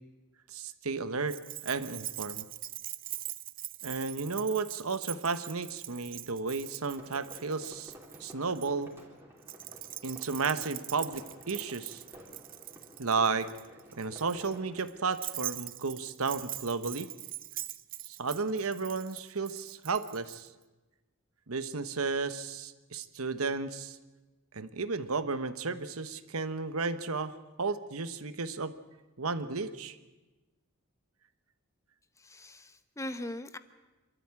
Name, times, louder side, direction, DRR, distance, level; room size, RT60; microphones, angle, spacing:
voice 1, 0.5-1.4 1.6-2.5 3.8-7.9 8.2-8.9 10.0-12.0 13.0-13.5 14.0-17.1 18.1-20.5 21.5-24.0 24.5-28.7 29.2-30.0, right 4 dB, 85° right, 11 dB, 1.2 m, -33 dB
Keys jangling, 1.3-8.7 9.4-20.4, right 14 dB, 40° right, 0.6 m, -42 dB
sound 1, 7.0-14.8, equal, 10° right, 3.9 m, -53 dB
voice 2, 32.2-33.6, left 1 dB, 15° left, 10 dB, 0.9 m, -40 dB
27.5 x 13.5 x 8.9 m, 1.2 s
head